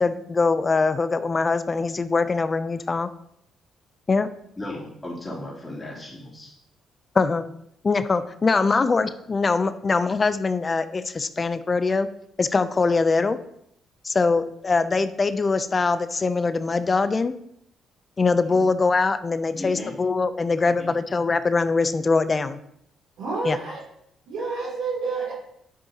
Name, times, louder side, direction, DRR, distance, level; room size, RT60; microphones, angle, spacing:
voice 1, 0.0-3.1 4.1-4.3 7.1-7.4 7.8-12.1 12.4-13.4 14.0-17.3 18.2-22.6 23.4-23.6, left 4 dB, 30° left, 12 dB, 0.5 m, -22 dB
voice 2, 4.6-6.6 18.4-18.7 19.5-19.9 20.8-20.9, left 1 dB, 15° left, -5 dB, 3.1 m, -36 dB
voice 3, 23.2-23.8 24.3-25.3, right 4 dB, 85° right, -5 dB, 3.1 m, -29 dB
9.4 x 7.4 x 2.9 m, 0.73 s
cardioid pair, 90°, 0 cm